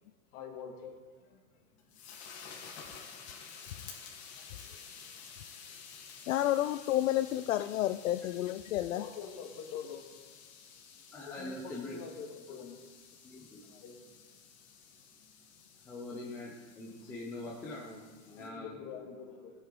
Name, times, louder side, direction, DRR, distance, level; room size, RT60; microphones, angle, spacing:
voice 1, 0.3-0.9 1.3-1.4 3.0-3.1 4.6-4.8 8.9-10.0 11.2-12.8 13.7-14.0 17.0-17.1 18.3-19.5, left 7 dB, 35° left, 2 dB, 1.9 m, -45 dB
sound 1, 1.5-18.5, left 6 dB, 50° left, 3.1 m, -52 dB
voice 2, 6.3-9.0, left 13 dB, 65° left, 11 dB, 0.5 m, -30 dB
voice 3, 11.1-12.0 12.5-12.6 13.2-13.7 15.8-19.4, left 2 dB, 5° left, -2 dB, 0.4 m, -44 dB
16.5 x 9.6 x 3.7 m, 1.5 s
supercardioid pair, 160°, 43 cm